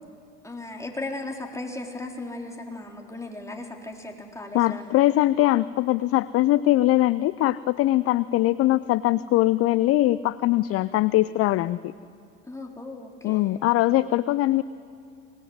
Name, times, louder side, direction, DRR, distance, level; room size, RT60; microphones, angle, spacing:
voice 1, 0.4-5.2 12.4-13.6, left 2 dB, 10° left, 1 dB, 4.0 m, -37 dB
voice 2, 4.5-11.9 13.2-14.6, left 16 dB, 40° left, 18 dB, 0.5 m, -21 dB
24.0 x 19.5 x 9.6 m, 2.4 s
hypercardioid pair, 80°, 37 cm